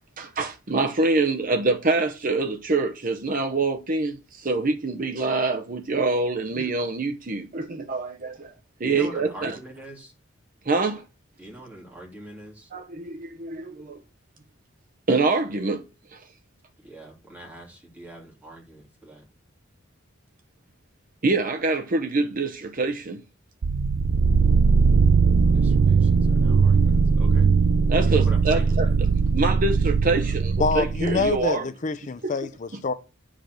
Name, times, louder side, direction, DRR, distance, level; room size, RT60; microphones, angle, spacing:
voice 1, 0.2-8.3 8.8-9.6 10.6-11.0 12.7-14.0 15.1-15.8 16.1-16.3 21.2-23.2 27.9-28.9 29.1-31.7 32.2-32.3, right 3 dB, 45° right, 0.8 m, -25 dB
voice 2, 8.8-10.1 11.4-12.7 16.8-19.3 25.5-27.5 28.0-29.0, right 1 dB, 10° right, 3.4 m, -42 dB
sound 1, 23.6-31.4, right 5 dB, 75° right, 0.5 m, -20 dB
voice 3, 30.6-32.9, left 4 dB, 40° left, 0.5 m, -26 dB
10.0 x 5.0 x 6.4 m
head